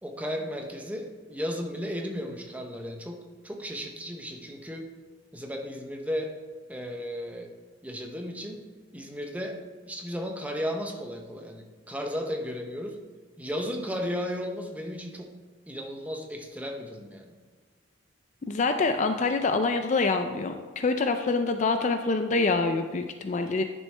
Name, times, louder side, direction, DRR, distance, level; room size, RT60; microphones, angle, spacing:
voice 1, 0.0-4.9 5.3-6.4 6.7-7.5 7.8-8.7 8.9-13.0 13.4-15.3 15.7-17.3, equal, 5° right, 3 dB, 0.7 m, -34 dB
voice 2, 18.5-23.6, left 3 dB, 35° left, 7 dB, 0.3 m, -26 dB
10.5 x 6.3 x 3.3 m, 1.5 s
head